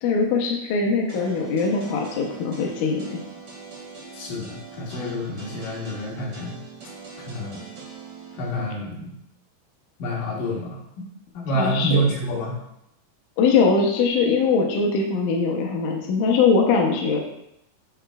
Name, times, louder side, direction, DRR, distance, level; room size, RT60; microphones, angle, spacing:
voice 1, 0.0-3.2 11.5-12.0 13.4-17.2, left 4 dB, 85° left, 0 dB, 1.8 m, -21 dB
sound 1, 1.1-8.7, right 5 dB, 50° right, 2.4 m, -42 dB
voice 2, 4.1-6.6 7.2-7.6 8.4-9.1 10.0-10.8 11.3-12.6, right 1 dB, 60° left, -4 dB, 2.8 m, -27 dB
8.9 x 4.9 x 2.3 m, 0.79 s
omnidirectional pair, 4.6 m